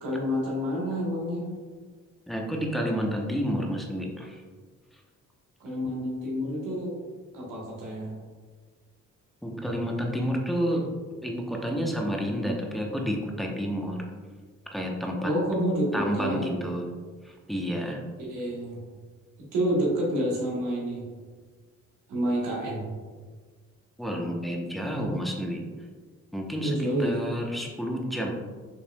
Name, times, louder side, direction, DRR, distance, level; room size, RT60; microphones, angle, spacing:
voice 1, 0.0-1.5 5.6-7.0 7.3-8.1 15.2-16.5 18.2-18.8 19.5-21.0 22.1-22.9 26.6-27.2, equal, 85° right, -4 dB, 1.3 m, -28 dB
voice 2, 2.3-4.4 9.4-10.9 11.2-14.1 14.7-15.3 15.9-16.9 17.2-18.0 24.0-25.6 26.3-28.3, equal, ahead, 0 dB, 0.8 m, -30 dB
5.2 x 3.3 x 2.2 m, 1.5 s
supercardioid pair, 55°, 31 cm